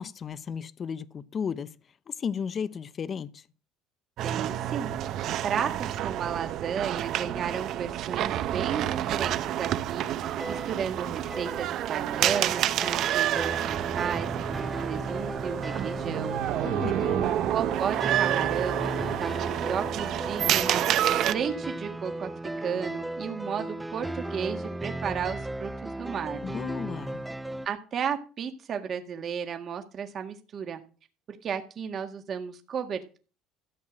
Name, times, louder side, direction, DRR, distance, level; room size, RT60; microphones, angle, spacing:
voice 1, 0.0-1.7 2.1-3.4 16.6-17.3 26.4-27.2, left 7 dB, 35° left, 0.8 m, -34 dB
voice 2, 4.2-4.9 5.4-16.4 17.3-20.8 21.3-22.3 22.6-26.4 27.7-30.8 31.3-33.2, right 7 dB, 40° right, 1.8 m, -34 dB
sound 1, 4.2-21.3, right 12 dB, 60° right, 0.9 m, -29 dB
sound 2, 10.2-27.7, right 1 dB, 10° right, 0.7 m, -36 dB
sound 3, 16.0-22.2, right 12 dB, 85° right, 2.3 m, -40 dB
14.0 x 8.3 x 6.3 m
cardioid pair, 120°, 0 cm